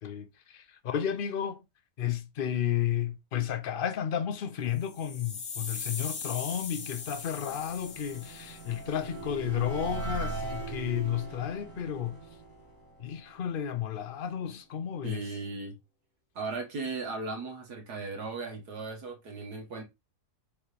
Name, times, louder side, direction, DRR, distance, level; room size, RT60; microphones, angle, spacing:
voice 1, 0.0-1.6 2.0-12.2 13.0-15.2, left 9 dB, 80° left, 0.4 m, -32 dB
sound 1, 4.7-8.9, left 5 dB, 45° left, 1.0 m, -40 dB
sound 2, 6.6-13.8, right 3 dB, 10° left, 2.8 m, -40 dB
voice 2, 15.0-15.7 16.4-19.8, right 3 dB, 75° right, 2.1 m, -37 dB
6.7 x 4.8 x 3.3 m
omnidirectional pair, 1.7 m